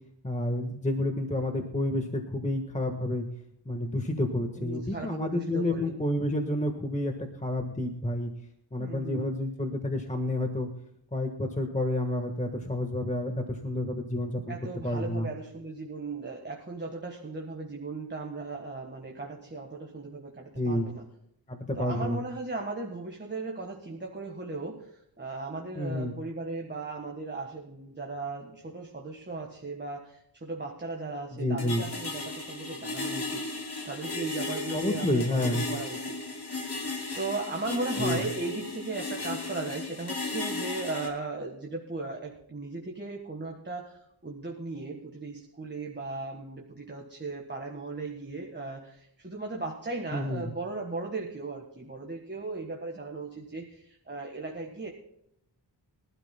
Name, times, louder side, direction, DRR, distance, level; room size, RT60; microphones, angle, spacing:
voice 1, 0.2-3.3 3.6-8.3 8.7-10.7 11.1-14.6 14.8-15.3 20.6-20.9 21.5-22.2 25.7-26.2 31.3-31.8 34.7-35.6 38.0-38.2 50.1-50.5, left 1 dB, 15° left, 4 dB, 1.4 m, -30 dB
voice 2, 4.5-5.9 8.8-9.4 14.5-21.0 21.8-24.8 25.2-36.2 37.1-54.9, right 3 dB, 25° right, 1 dB, 1.6 m, -37 dB
sound 1, 31.6-41.1, left 2 dB, 60° left, 2.6 m, -35 dB
23.5 x 12.5 x 2.2 m, 0.76 s
wide cardioid pair, 85°, 43 cm